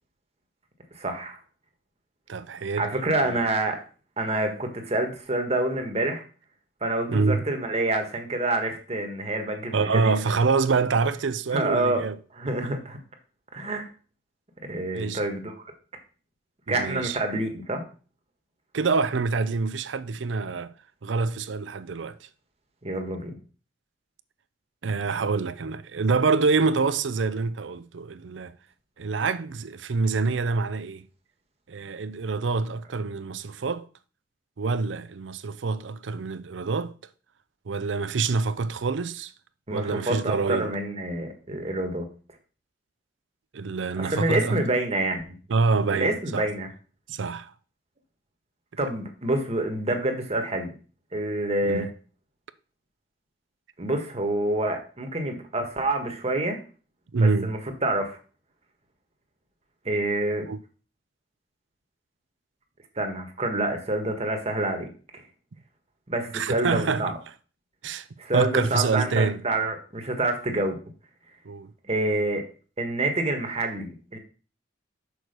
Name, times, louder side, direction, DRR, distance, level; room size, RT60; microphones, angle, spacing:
voice 1, 0.9-1.4 2.8-3.8 4.2-6.2 6.8-10.1 11.5-12.0 12.3-13.0 13.5-13.8 14.6-15.5 16.7-17.8 22.8-23.3 39.7-42.1 44.0-45.4 45.9-46.7 48.8-50.7 51.1-51.9 53.8-56.6 57.2-58.2 59.8-60.5 63.0-64.9 66.1-67.1 68.2-70.8 71.8-72.4 72.8-74.2, right 2 dB, 35° right, 1.4 m, -27 dB
voice 2, 2.3-2.9 3.2-3.4 7.1-7.4 9.7-12.2 14.9-15.2 16.7-17.2 18.7-20.7 21.0-22.2 24.8-28.5 29.0-31.0 31.7-33.9 34.6-36.9 37.7-39.3 39.7-40.7 43.5-44.6 45.5-46.5 47.1-47.5 51.7-51.9 57.1-57.6 60.4-60.6 66.3-67.0 67.8-68.1 68.3-69.4 71.5-71.7, right 4 dB, 90° right, 0.6 m, -26 dB
6.3 x 4.6 x 6.6 m
head